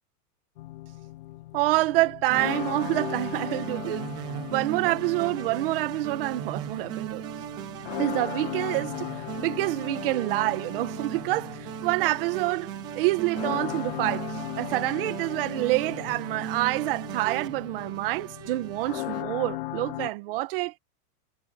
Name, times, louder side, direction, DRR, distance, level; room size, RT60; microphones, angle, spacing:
sound 1, 0.6-20.1, left 17 dB, 35° left, 0.7 m, -38 dB
voice 1, 1.5-4.1 4.5-7.2 8.0-9.1 9.4-20.8, right 19 dB, 35° right, 1.7 m, -27 dB
sound 2, 2.3-19.2, right 12 dB, 10° right, 0.5 m, -38 dB
supercardioid pair, 180°, 46 cm